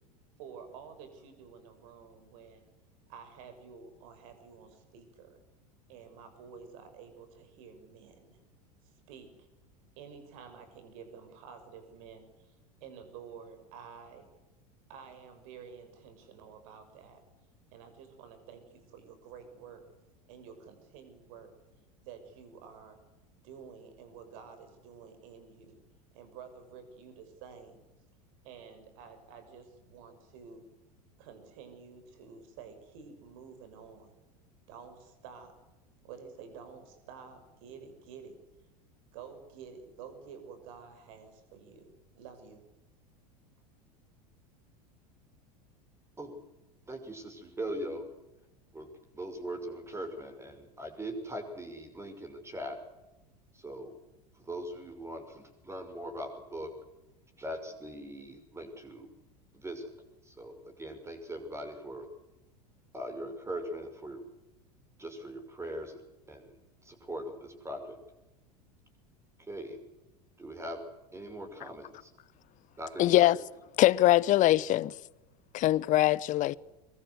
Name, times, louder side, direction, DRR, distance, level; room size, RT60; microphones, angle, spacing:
voice 1, 0.4-2.7 3.1-5.4 5.9-8.4 9.1-9.5 10.0-12.5 12.8-14.3 14.9-17.2 17.7-19.8 20.3-21.5 22.0-23.0 23.4-25.8 26.1-27.8 28.4-30.6 31.2-34.1 34.7-35.5 36.0-38.4 39.1-41.9 42.1-42.6, right 6 dB, 60° right, 6.3 m, -50 dB
voice 2, 46.9-48.1 48.7-52.8 53.5-54.0 54.3-56.7 57.4-59.1 59.5-59.9 60.2-62.1 62.9-64.2 65.0-66.0 66.3-68.0 69.5-69.8 70.4-72.1 72.8-73.3, right 1 dB, 15° right, 6.0 m, -41 dB
voice 3, 73.0-73.4 73.8-74.9 75.5-76.6, left 15 dB, 40° left, 0.9 m, -23 dB
24.0 x 23.0 x 8.2 m
figure-of-eight pair, 80°, 20 cm